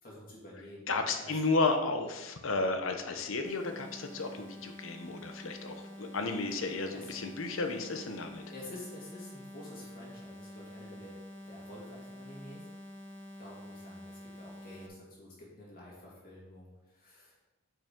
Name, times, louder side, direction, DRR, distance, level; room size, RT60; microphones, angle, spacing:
voice 1, 0.0-1.4 6.9-7.1 8.5-11.2 11.5-12.7 13.4-17.4, left 1 dB, 40° left, -5 dB, 2.7 m, -49 dB
voice 2, 0.9-8.4, left 3 dB, 65° left, 6 dB, 0.8 m, -33 dB
sound 1, 3.4-14.9, left 1 dB, 10° left, 0.7 m, -48 dB
8.9 x 5.6 x 3.7 m, 1.0 s
head